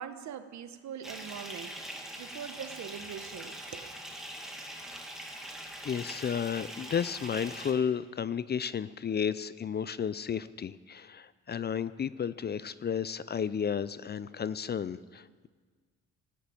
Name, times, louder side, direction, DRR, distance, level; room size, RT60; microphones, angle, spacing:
voice 1, 0.0-1.8 2.2-3.9, right 8 dB, 65° right, 10 dB, 1.2 m, -42 dB
Bathtub (filling or washing) / Fill (with liquid), 1.0-7.7, right 1 dB, ahead, 2.2 m, -43 dB
voice 2, 5.8-15.5, left 7 dB, 35° left, 17 dB, 0.5 m, -33 dB
14.5 x 9.4 x 8.8 m, 1.5 s
cardioid pair, 90°, 30 cm